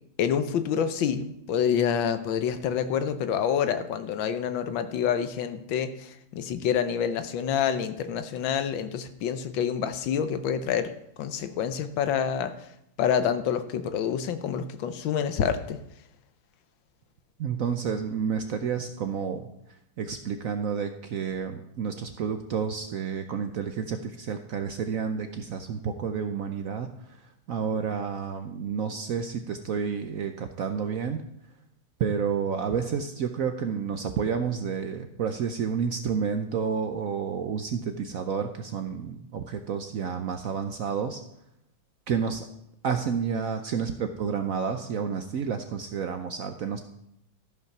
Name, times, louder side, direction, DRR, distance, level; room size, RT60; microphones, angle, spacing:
voice 1, 0.2-10.9 11.2-12.5 13.0-15.8, left 8 dB, 75° left, 10 dB, 1.5 m, -27 dB
voice 2, 17.4-19.5 20.0-27.2 27.5-31.2 32.0-41.2 42.1-42.5 42.8-46.8, right 6 dB, 75° right, 7 dB, 0.7 m, -30 dB
13.5 x 5.5 x 5.9 m, 0.77 s
omnidirectional pair, 2.2 m